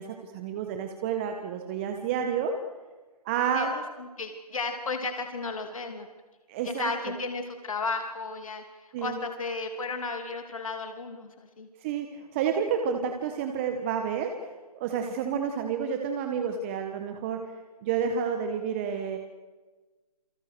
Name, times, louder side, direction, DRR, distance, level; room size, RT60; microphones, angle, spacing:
voice 1, 0.0-2.5 3.2-3.7 6.5-6.9 8.9-9.2 11.8-14.5 14.7-17.5 17.8-19.2, right 7 dB, 20° right, 5 dB, 1.4 m, -30 dB
voice 2, 3.5-6.1 6.6-11.7, left 3 dB, 55° left, 5 dB, 3.1 m, -34 dB
29.0 x 24.5 x 6.3 m, 1.3 s
figure-of-eight pair, 155°, 20 cm